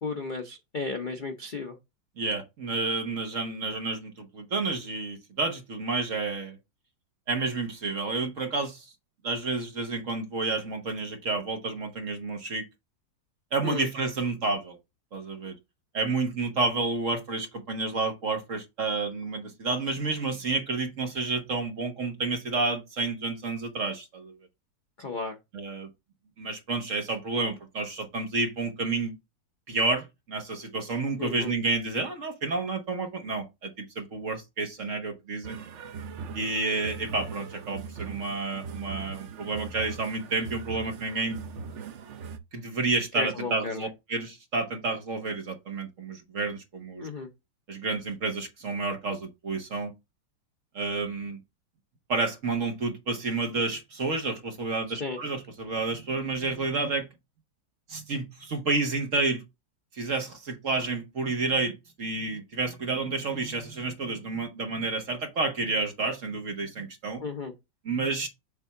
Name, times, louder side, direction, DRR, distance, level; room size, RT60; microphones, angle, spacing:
voice 1, 0.0-1.8 13.6-13.9 25.0-25.4 31.2-31.5 43.1-43.9 47.0-47.3 55.0-55.2 67.2-67.5, left 3 dB, 55° left, 0.5 m, -34 dB
voice 2, 2.2-6.6 7.3-8.9 9.2-12.6 13.5-14.8 15.1-15.6 15.9-24.4 25.5-25.9 26.4-29.1 29.7-35.6 36.3-41.4 42.5-47.1 47.7-49.9 50.7-51.4 52.1-57.1 57.9-59.4 59.9-67.2 67.8-68.3, right 3 dB, 45° right, 1.4 m, -30 dB
sound 1, 35.4-42.4, right 6 dB, 70° right, 0.7 m, -40 dB
7.3 x 2.7 x 5.6 m
omnidirectional pair, 2.0 m